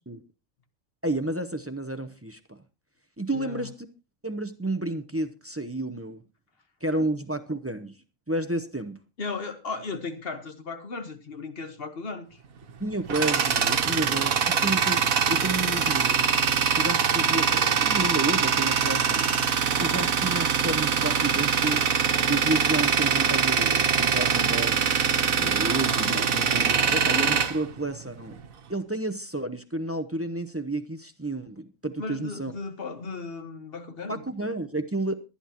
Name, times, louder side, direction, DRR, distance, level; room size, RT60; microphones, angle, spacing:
voice 1, 1.0-2.6 3.2-3.9 4.2-6.2 6.8-8.0 8.3-9.0 12.8-16.3 16.8-19.3 19.8-21.9 22.3-24.8 25.4-28.4 28.7-32.5 34.1-35.1, right 2 dB, 15° right, 0.4 m, -31 dB
voice 2, 3.3-3.7 9.2-12.4 32.0-34.2, left 4 dB, 45° left, 1.5 m, -36 dB
Tools, 12.6-28.4, right 6 dB, 80° right, 1.5 m, -23 dB
22.0 x 9.9 x 2.9 m
omnidirectional pair, 1.4 m